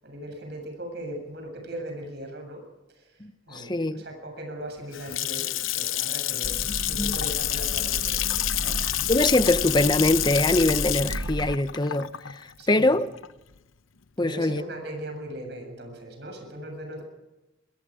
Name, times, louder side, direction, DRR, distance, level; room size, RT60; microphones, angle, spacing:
voice 1, 0.0-2.6 2.9-8.2 8.5-8.8 12.6-13.0 14.2-17.0, right 1 dB, 55° right, 7.5 m, -39 dB
voice 2, 3.2-4.0 7.0-7.2 9.1-13.1 14.2-14.6, left 2 dB, 20° left, 0.9 m, -23 dB
Water tap faucet / Sink (filling or washing) / Splash splatter, 4.7-13.6, left 14 dB, 85° left, 0.8 m, -28 dB
sound 1, 6.4-11.6, right 2 dB, 80° right, 1.0 m, -34 dB
26.5 x 22.5 x 5.0 m
head